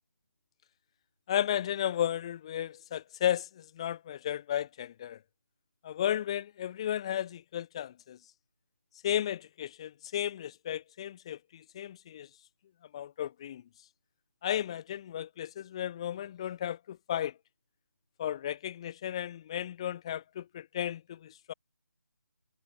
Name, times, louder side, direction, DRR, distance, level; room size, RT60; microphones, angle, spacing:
voice 1, 1.3-5.2 5.8-8.2 9.0-12.3 12.9-13.6 14.4-17.3 18.2-21.5, left 10 dB, 20° left, 0.4 m, -34 dB
figure-of-eight pair, 155°, 10 cm